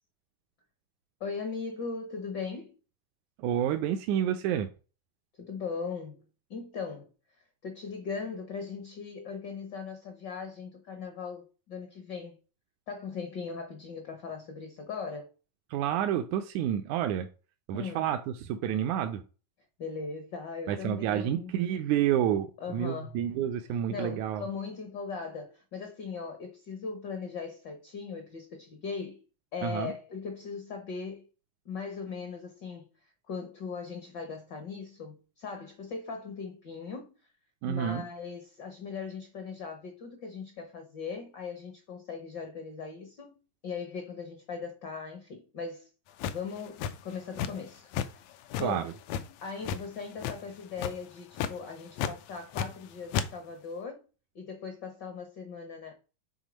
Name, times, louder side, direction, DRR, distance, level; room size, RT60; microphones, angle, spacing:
voice 1, 1.2-2.7 5.4-6.2 6.5-7.1 7.6-12.3 12.9-15.3 17.7-18.1 19.8-21.5 22.6-23.2 23.9-29.2 29.5-31.2 31.6-32.9 33.3-37.1 37.7-43.4 43.6-45.9 46.3-48.2 48.6-48.9 49.4-54.0 54.3-55.9, left 5 dB, 55° left, 1.2 m, -39 dB
voice 2, 3.4-4.7 15.7-17.3 17.7-19.2 20.7-24.4 29.6-29.9 37.6-38.1 48.6-48.9, right 10 dB, 85° right, 2.0 m, -29 dB
sound 1, 46.2-47.7 47.9-48.1 48.5-49.8 50.2-50.5 50.8-51.0 51.3-51.5 52.0-52.8 53.1-53.3, left 8 dB, 75° left, 1.8 m, -32 dB
8.2 x 3.7 x 5.1 m
omnidirectional pair, 3.4 m